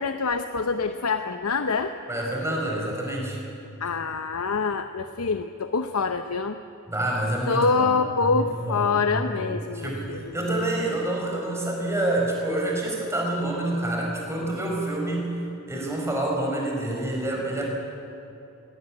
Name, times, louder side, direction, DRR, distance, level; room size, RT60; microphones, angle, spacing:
voice 1, 0.0-1.9 3.8-6.6 7.5-10.4, left 4 dB, 85° left, 8 dB, 0.8 m, -25 dB
voice 2, 2.1-3.4 6.9-8.0 8.3-15.2 15.7-17.6, right 1 dB, 15° right, -2 dB, 4.6 m, -28 dB
19.5 x 17.5 x 9.7 m, 2.9 s
head